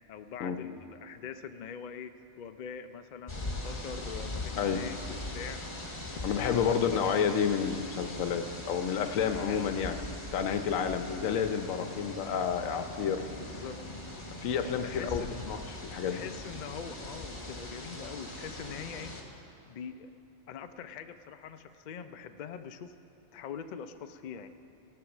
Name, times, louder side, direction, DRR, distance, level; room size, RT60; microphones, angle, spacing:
voice 1, 0.1-5.6 6.3-6.8 9.2-9.7 13.3-13.8 14.8-15.4 16.0-19.3 19.7-20.1 20.5-22.9 23.3-24.5, left 7 dB, 60° left, 9 dB, 0.5 m, -43 dB
sound 1, 3.3-19.2, left 2 dB, 25° left, 1.3 m, -41 dB
voice 2, 6.2-10.0 10.3-13.3 14.4-16.2, left 7 dB, 90° left, 9 dB, 1.1 m, -30 dB
17.5 x 5.8 x 7.1 m, 2.8 s
omnidirectional pair, 1.3 m